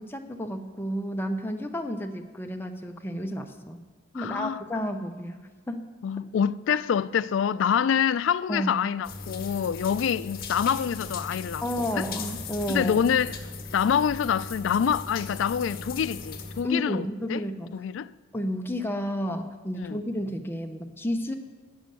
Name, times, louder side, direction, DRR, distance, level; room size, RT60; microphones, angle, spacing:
voice 1, 0.0-3.8 4.1-5.4 5.7-5.9 6.7-6.8 8.5-8.8 11.6-13.0 16.6-17.7 18.3-21.3, equal, 10° left, 0.7 m, -31 dB
voice 2, 4.1-4.6 6.0-12.1 12.7-13.4 13.7-17.4 17.7-18.1 19.8-20.0, left 8 dB, 70° left, 0.3 m, -26 dB
sound 1, 9.0-16.6, left 4 dB, 50° left, 1.5 m, -38 dB
10.0 x 7.0 x 7.6 m
head